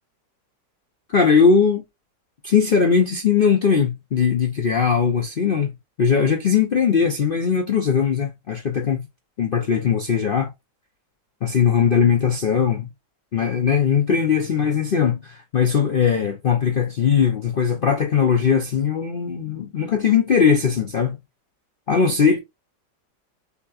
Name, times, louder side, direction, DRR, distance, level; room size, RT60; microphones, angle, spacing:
voice 1, 1.1-1.8 2.4-5.7 6.0-9.0 9.4-10.5 11.4-12.9 13.3-21.2 21.9-22.4, left 6 dB, 80° left, 0.5 m, -19 dB
7.0 x 2.9 x 2.4 m
omnidirectional pair, 1.9 m